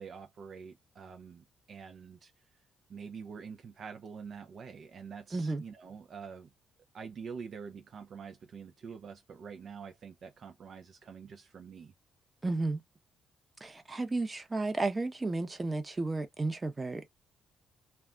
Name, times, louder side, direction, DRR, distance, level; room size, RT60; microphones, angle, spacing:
voice 1, 0.0-2.3 2.9-6.5 6.9-11.9, right 6 dB, 55° right, 0.4 m, -46 dB
voice 2, 5.3-5.6 12.4-12.8 13.6-17.0, right 3 dB, 25° right, 0.7 m, -33 dB
2.3 x 2.1 x 3.6 m
cardioid pair, 90°, 0 cm